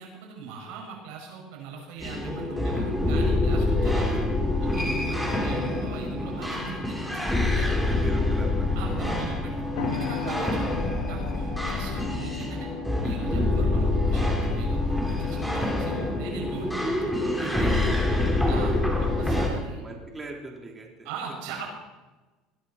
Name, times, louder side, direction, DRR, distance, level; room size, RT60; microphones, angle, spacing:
voice 1, 0.0-4.3 4.6-7.0 7.4-7.7 8.8-9.6 9.9-10.8 11.1-12.7 13.0-14.8 15.1-16.7 17.4-17.9 18.5-19.8 21.0-21.7, right 5 dB, 80° right, 0 dB, 5.7 m, -39 dB
sound 1, 2.0-19.5, left 2 dB, 5° left, 3.1 m, -26 dB
voice 2, 7.7-8.7 10.0-10.1 17.6-17.7 19.4-21.1, right 2 dB, 20° right, 0 dB, 3.3 m, -40 dB
sound 2, 9.8-19.5, left 6 dB, 90° left, 1.9 m, -40 dB
20.5 x 11.5 x 4.3 m, 1.2 s
supercardioid pair, 115°, 0 cm